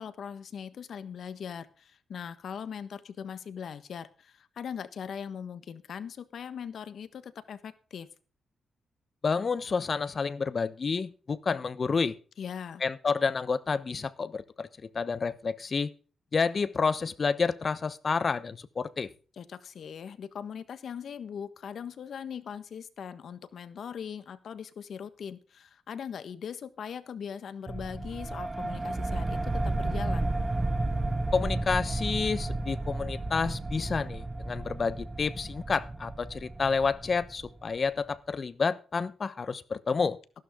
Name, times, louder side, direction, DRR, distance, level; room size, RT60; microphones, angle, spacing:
voice 1, 0.0-8.1 12.4-12.8 19.4-30.3, left 7 dB, 60° left, 13 dB, 1.4 m, -40 dB
voice 2, 9.2-12.2 12.8-14.7 14.9-15.9 16.3-19.1 31.3-40.2, left 5 dB, 35° left, 15 dB, 1.0 m, -29 dB
sound 1, 27.7-37.9, right 2 dB, 20° right, 1.7 m, -32 dB
14.5 x 12.0 x 3.7 m, 0.37 s
cardioid pair, 130°, 0 cm